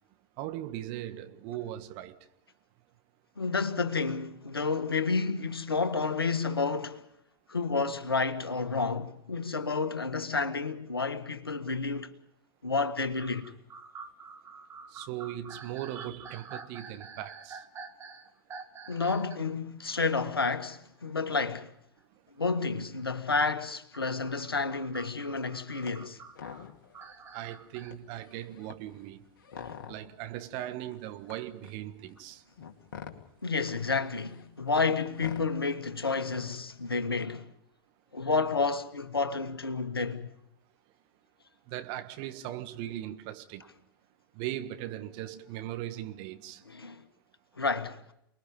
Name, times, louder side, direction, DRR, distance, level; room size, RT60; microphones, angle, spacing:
voice 1, 0.4-2.3 14.9-17.7 27.3-29.2 29.9-32.4 41.7-43.7 44.3-46.6, right 13 dB, 40° right, 1.5 m, -39 dB
voice 2, 3.4-7.0 7.5-12.1 12.6-13.5 18.9-21.7 22.4-26.2 29.6-29.8 33.4-37.5 38.1-40.3 46.6-47.0 47.6-48.0, left 4 dB, 80° left, 1.7 m, -30 dB
sound 1, 13.2-19.5 20.0-20.1 21.5-21.6 23.9-27.9, right 5 dB, 20° right, 2.4 m, -47 dB
sound 2, 25.8-26.0 26.3-27.0 27.4-27.5 27.8-30.2 30.9-36.7, left 7 dB, 60° left, 2.5 m, -47 dB
29.5 x 21.0 x 5.3 m
figure-of-eight pair, 95°, 12 cm